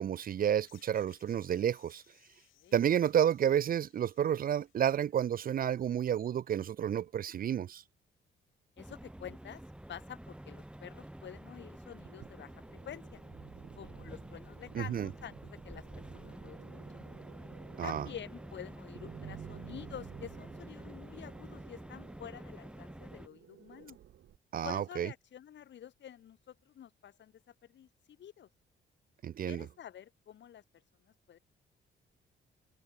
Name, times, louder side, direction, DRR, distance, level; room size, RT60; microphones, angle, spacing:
voice 1, 0.0-2.0 2.7-7.8 14.7-15.1 17.8-18.0 24.5-25.1 29.2-29.7, right 9 dB, 45° right, 0.5 m, -30 dB
sound 1, 0.7-5.4, left 15 dB, 90° left, 4.4 m, -67 dB
voice 2, 8.8-9.6 9.9-12.5 12.8-13.2 13.8-17.0 17.8-24.0 24.6-28.5 29.5-31.4, left 10 dB, 65° left, 4.9 m, -49 dB
sound 2, 8.8-23.3, right 1 dB, 5° right, 1.0 m, -49 dB
sound 3, 12.0-24.4, right 11 dB, 70° right, 6.8 m, -53 dB
cardioid pair, 90°, 20 cm